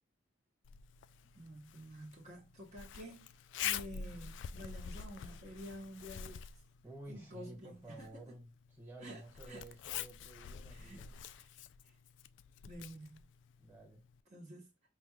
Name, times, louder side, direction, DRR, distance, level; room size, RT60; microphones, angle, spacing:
Zipper (clothing), 0.6-14.2, left 9 dB, 80° left, 0.3 m, -47 dB
voice 1, 1.3-6.4 7.1-8.4 9.0-9.2 9.5-9.6 10.7-11.0 11.4-11.5 11.9-12.0 12.6-13.2 14.3-14.7, equal, 40° right, 1.0 m, -50 dB
voice 2, 6.8-11.2 13.6-14.0, right 1 dB, 10° right, 1.4 m, -52 dB
5.5 x 2.3 x 3.1 m
head